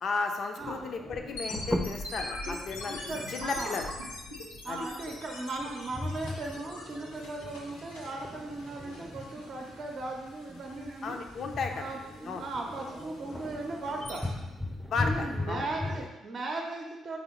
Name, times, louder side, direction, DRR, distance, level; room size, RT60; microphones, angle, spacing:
voice 1, 0.0-3.0 3.3-3.9 4.7-4.9 11.0-11.8 12.3-12.4 14.9-15.6, left 4 dB, 55° left, 4 dB, 0.5 m, -34 dB
sound 1, 0.6-16.1, left 1 dB, ahead, 0.5 m, -39 dB
voice 2, 0.6-0.9 2.4-3.9 4.6-11.2 11.7-14.3 15.0-17.2, right 2 dB, 50° right, 1 dB, 0.6 m, -38 dB
sound 2, 1.3-14.3, left 2 dB, 85° left, 0.8 m, -43 dB
4.1 x 3.4 x 3.0 m, 1.0 s
hypercardioid pair, 45°, 0 cm